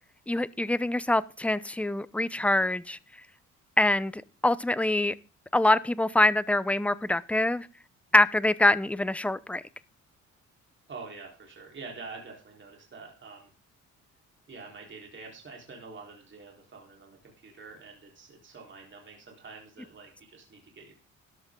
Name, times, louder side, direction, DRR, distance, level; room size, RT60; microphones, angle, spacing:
voice 1, 0.3-3.0 3.8-5.1 5.5-7.7 8.1-9.6, left 1 dB, 5° left, 0.7 m, -24 dB
voice 2, 10.9-13.5 14.5-20.9, right 4 dB, 40° right, 4.0 m, -46 dB
13.0 x 10.5 x 3.8 m
cardioid pair, 90°, 30 cm